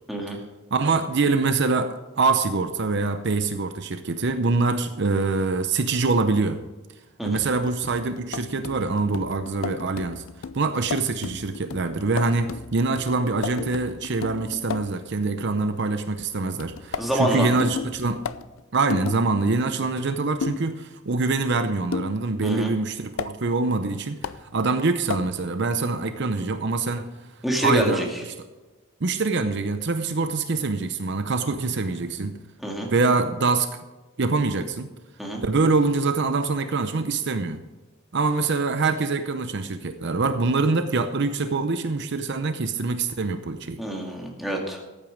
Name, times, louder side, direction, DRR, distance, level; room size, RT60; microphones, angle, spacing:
voice 1, 0.7-6.6 7.2-10.2 10.5-18.2 18.7-27.1 27.6-28.1 29.0-32.4 32.9-33.7 34.2-34.9 35.4-37.6 38.1-43.8, right 3 dB, 55° right, 9 dB, 0.7 m, -24 dB
sound 1, 7.4-15.0 16.6-19.2 20.4-20.7 21.9-22.2 23.2-23.3 24.2-24.4 25.1-25.3, left 5 dB, 70° left, 0.5 m, -34 dB
voice 2, 17.0-17.6 22.4-22.7 27.4-28.1 32.6-32.9 35.2-35.4 43.8-44.8, equal, ahead, 0 dB, 2.1 m, -26 dB
14.0 x 9.0 x 5.1 m, 1.2 s
head